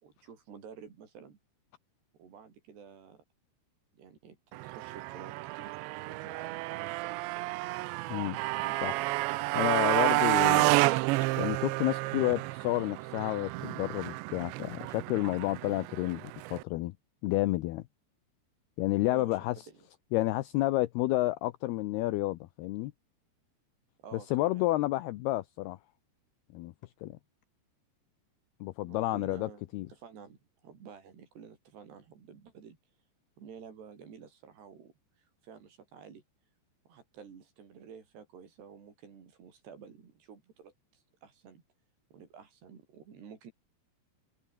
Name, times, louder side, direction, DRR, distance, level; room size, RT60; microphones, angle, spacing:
voice 1, 0.0-1.4 2.1-3.2 3.9-7.5 8.5-9.7 19.1-19.8 24.0-24.9 28.8-30.4 30.6-32.8 33.4-34.9 35.4-36.2 36.9-41.6 42.1-43.5, right 7 dB, 70° right, 6.2 m, -51 dB
Motorcycle, 4.5-16.6, right 22 dB, 90° right, 2.9 m, -30 dB
voice 2, 9.6-10.8 11.4-16.9 17.2-17.8 18.8-19.6 20.1-22.9 24.3-25.8 26.5-26.7 27.0-27.2 28.6-29.9, left 17 dB, 75° left, 2.6 m, -30 dB
omnidirectional pair, 5.0 m